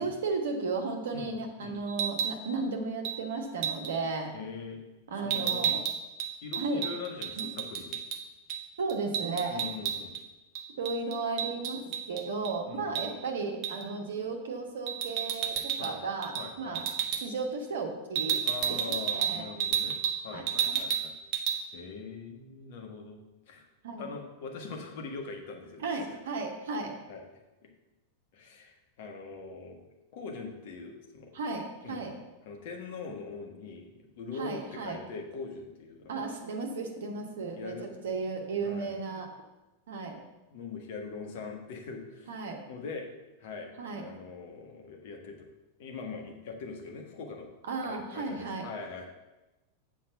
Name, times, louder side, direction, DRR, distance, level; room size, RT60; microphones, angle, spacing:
voice 1, 0.0-4.3 5.1-5.8 6.5-6.8 7.4-7.5 8.8-9.6 10.8-16.9 17.2-18.5 18.9-19.4 20.3-20.8 23.8-24.1 25.8-27.0 31.3-32.1 34.3-35.0 36.1-39.3 39.9-40.2 42.3-42.6 43.8-44.1 47.7-48.7, right 4 dB, 60° right, 2 dB, 1.4 m, -34 dB
sound 1, 1.9-2.4 3.0-3.2 3.6-3.9 5.3-8.2 8.5-8.6 8.9-10.2 10.5-12.5 12.9-13.1 13.6-13.9 14.9-15.9 16.2-16.5 16.7-17.2 18.1-20.2 20.5-21.1 21.3-21.6, right 9 dB, 40° right, 0.9 m, -31 dB
voice 2, 4.3-4.8 5.2-5.8 6.4-8.0 9.5-10.1 12.7-13.0 15.8-16.0 16.3-16.8 18.4-21.2 21.7-23.7 24.0-26.2 27.1-27.2 27.6-27.7 28.3-29.8 30.1-31.4 31.8-32.0 32.4-36.2 37.6-37.9 38.6-38.9 40.5-42.4 42.7-43.1 43.4-45.5 45.8-47.5 47.8-49.1, left 4 dB, 50° left, 2 dB, 1.4 m, -42 dB
7.7 x 4.6 x 7.1 m, 1.0 s
figure-of-eight pair, 90°, 0 cm